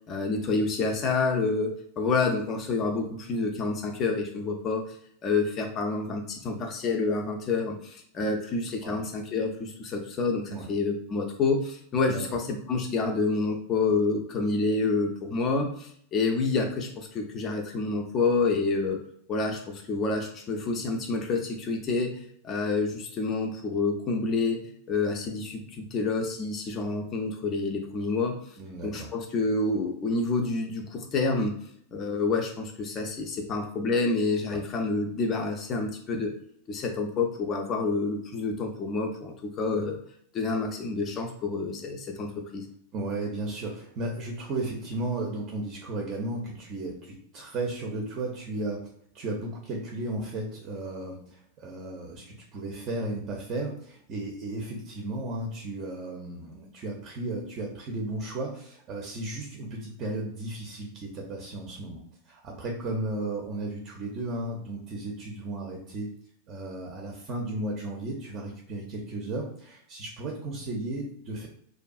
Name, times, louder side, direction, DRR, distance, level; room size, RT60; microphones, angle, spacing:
voice 1, 0.1-1.7 2.0-5.0 5.2-19.0 19.3-28.4 28.8-31.5 31.9-36.3 36.7-40.0 40.3-42.7, left 3 dB, 30° left, 3 dB, 0.4 m, -28 dB
voice 2, 28.6-29.1 34.5-34.6 42.9-66.1 66.5-71.5, right 2 dB, 35° right, -1 dB, 0.5 m, -34 dB
2.5 x 2.2 x 2.4 m, 0.66 s
figure-of-eight pair, 90°, 0 cm